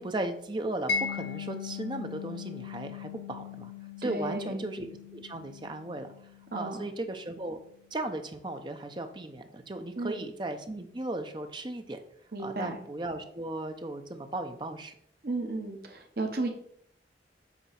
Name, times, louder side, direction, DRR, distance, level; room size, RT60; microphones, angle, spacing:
voice 1, 0.0-3.7 4.0-6.1 6.5-7.6 7.9-12.0 12.4-14.9, right 2 dB, 25° right, 7 dB, 0.6 m, -36 dB
Mallet percussion, 0.9-7.7, left 6 dB, 85° left, 0.6 m, -39 dB
voice 2, 4.0-4.5 6.5-6.9 10.0-10.2 12.3-12.8 15.2-16.5, right 2 dB, 55° right, 4 dB, 0.9 m, -33 dB
8.2 x 2.9 x 5.8 m, 0.69 s
head